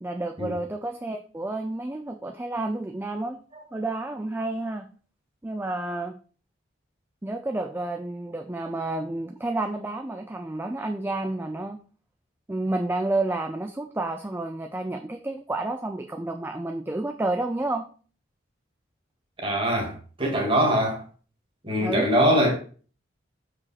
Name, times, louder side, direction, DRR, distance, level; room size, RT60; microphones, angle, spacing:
voice 1, 0.0-3.4 3.7-4.9 5.4-6.1 7.2-11.8 12.5-17.8 21.8-22.1, right 2 dB, 10° right, 0.4 m, -30 dB
voice 2, 19.4-21.0 21.6-22.5, equal, 30° right, 1.8 m, -22 dB
6.6 x 5.0 x 4.2 m
head